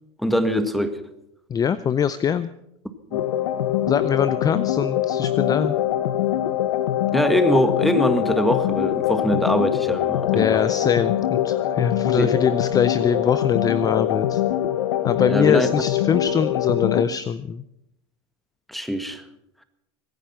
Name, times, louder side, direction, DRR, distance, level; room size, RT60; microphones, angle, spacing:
voice 1, 0.2-1.0 3.1-3.2 7.1-10.6 12.2-12.4 15.3-15.7 18.7-19.2, equal, ahead, 9 dB, 1.6 m, -22 dB
voice 2, 1.5-2.5 3.9-5.8 10.3-14.4 15.0-17.6, left 7 dB, 25° left, 15 dB, 0.6 m, -23 dB
sound 1, 3.1-17.1, left 11 dB, 85° left, 1.1 m, -23 dB
23.5 x 10.0 x 5.8 m, 0.81 s
supercardioid pair, 115°, 15 cm